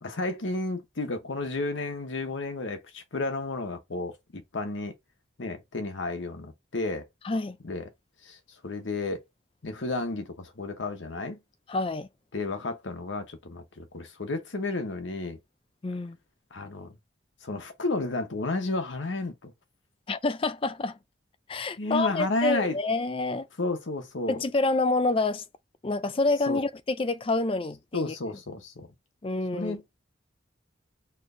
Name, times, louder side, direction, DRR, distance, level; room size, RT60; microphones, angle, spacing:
voice 1, 0.0-4.9 5.4-7.1 7.6-7.8 8.2-8.4 8.6-9.2 9.6-11.4 12.3-15.4 16.5-16.9 17.4-19.5 21.8-22.8 23.6-24.4 26.5-26.6 27.9-28.9 29.5-29.8, left 2 dB, 80° left, 0.9 m, -32 dB
voice 2, 7.2-7.6 11.7-12.1 15.8-16.2 20.1-21.0 21.5-23.5 24.3-25.4 25.8-28.1 29.2-29.8, left 3 dB, 30° left, 0.4 m, -27 dB
4.4 x 3.1 x 2.6 m
head